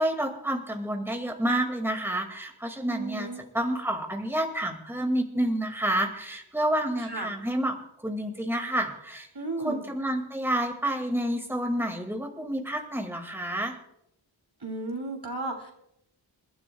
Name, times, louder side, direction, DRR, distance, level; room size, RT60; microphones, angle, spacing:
voice 1, 0.0-3.3 3.5-9.3 9.6-13.8, right 1 dB, 5° right, 2 dB, 2.1 m, -29 dB
voice 2, 2.9-3.4 7.0-7.3 9.3-9.8 14.6-15.7, right 2 dB, 50° right, 2 dB, 3.0 m, -34 dB
29.0 x 12.0 x 2.3 m, 0.78 s
wide cardioid pair, 70°, 48 cm